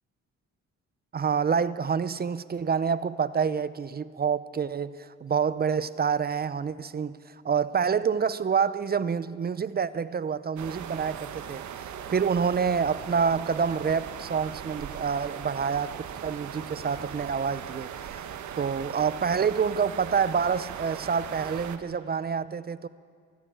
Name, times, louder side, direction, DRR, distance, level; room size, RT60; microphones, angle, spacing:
voice 1, 1.1-18.2 18.6-22.9, right 6 dB, 30° right, 16 dB, 0.7 m, -27 dB
sound 1, 10.6-21.8, right 9 dB, 70° right, 1.4 m, -39 dB
22.5 x 14.5 x 9.0 m, 2.1 s
cardioid pair, 90°, 30 cm